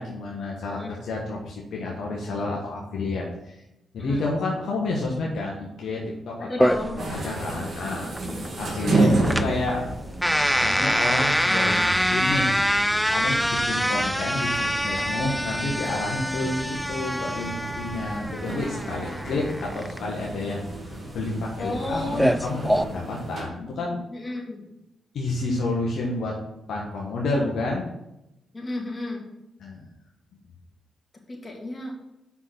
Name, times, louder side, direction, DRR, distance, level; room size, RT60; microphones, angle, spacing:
voice 1, 0.0-3.6 3.9-8.1 8.6-9.9 10.5-12.5 13.1-24.0 25.1-26.3 26.7-27.8 29.6-29.9, left 2 dB, 70° left, -2 dB, 1.3 m, -30 dB
voice 2, 6.4-6.9 8.2-8.6 21.6-22.3 24.1-24.7 28.5-29.2 31.3-32.0, left 2 dB, 35° left, 0 dB, 2.6 m, -33 dB
sound 1, 6.6-22.8, equal, ahead, 0.5 m, -25 dB
sound 2, 7.0-23.4, right 2 dB, 60° right, 2.5 m, -31 dB
6.1 x 5.8 x 6.1 m, 0.89 s
supercardioid pair, 45°, 0 cm